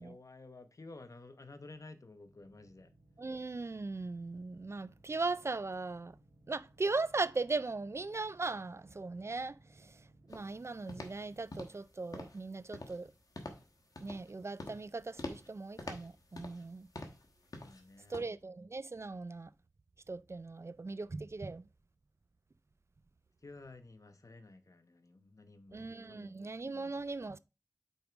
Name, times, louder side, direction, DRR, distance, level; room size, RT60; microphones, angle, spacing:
voice 1, 0.0-2.9 17.6-18.3 23.4-26.4, left 2 dB, 65° left, 0.9 m, -53 dB
sound 1, 2.1-11.4, right 1 dB, 90° right, 1.1 m, -64 dB
voice 2, 3.2-6.2 6.5-10.0 10.3-13.1 14.0-16.9 18.1-19.5 20.1-21.7 25.7-27.4, right 3 dB, 50° right, 0.4 m, -38 dB
sound 2, 10.3-10.5 10.9-11.2 11.5-11.8 12.1-12.4 12.7-13.1 13.3-13.7 13.9-14.3 14.6-14.9 15.2-15.5 15.8-16.7 16.9-17.3 17.5-17.8 18.1-18.2, left 2 dB, 85° left, 1.1 m, -45 dB
5.3 x 4.6 x 4.9 m
wide cardioid pair, 45°, 6 cm